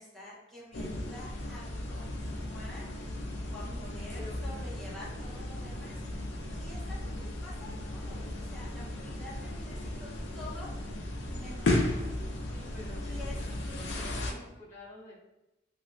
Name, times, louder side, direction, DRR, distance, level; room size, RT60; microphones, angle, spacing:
voice 1, 0.0-2.9 3.5-6.0 6.5-10.1 10.3-10.8 11.2-12.0 13.0-13.4 13.9-14.4, left 1 dB, ahead, -10 dB, 1.1 m, -48 dB
sound 1, 0.7-14.3, left 1 dB, 60° left, 0.5 m, -35 dB
voice 2, 12.5-13.5 13.9-15.1, left 2 dB, 40° left, -5 dB, 1.0 m, -48 dB
3.1 x 2.9 x 2.6 m, 0.93 s
head